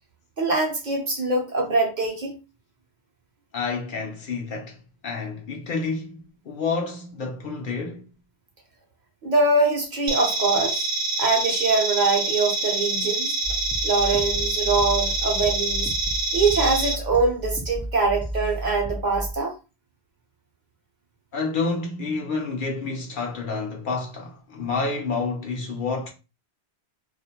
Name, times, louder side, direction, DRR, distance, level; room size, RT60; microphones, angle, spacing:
voice 1, 0.4-2.4 9.2-10.9 11.2-13.4 13.8-15.9 16.3-19.5, right 3 dB, 50° right, 0.7 m, -23 dB
voice 2, 3.5-4.8 5.0-6.2 6.4-8.0 21.3-26.1, left 4 dB, 60° left, 0.6 m, -29 dB
sound 1, 10.1-16.9, right 3 dB, 75° right, 0.8 m, -26 dB
sound 2, 13.4-19.3, right 1 dB, 10° right, 0.4 m, -33 dB
2.4 x 2.0 x 2.8 m
omnidirectional pair, 1.1 m